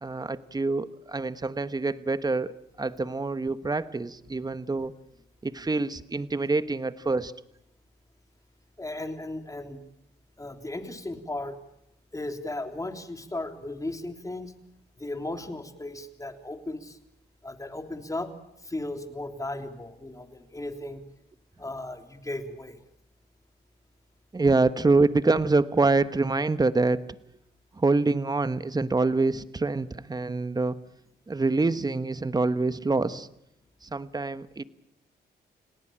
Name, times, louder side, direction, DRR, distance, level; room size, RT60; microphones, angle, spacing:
voice 1, 0.0-4.9 5.4-7.3 24.3-27.1 27.8-30.8 31.3-33.3 33.8-34.6, right 3 dB, 20° right, 14 dB, 1.2 m, -26 dB
voice 2, 8.8-9.8 10.4-11.5 12.1-14.5 15.0-17.0 17.4-18.3 18.6-21.0 21.6-22.8, left 2 dB, 20° left, 6 dB, 3.3 m, -36 dB
29.5 x 17.5 x 8.9 m, 0.79 s
cardioid pair, 75°, 18 cm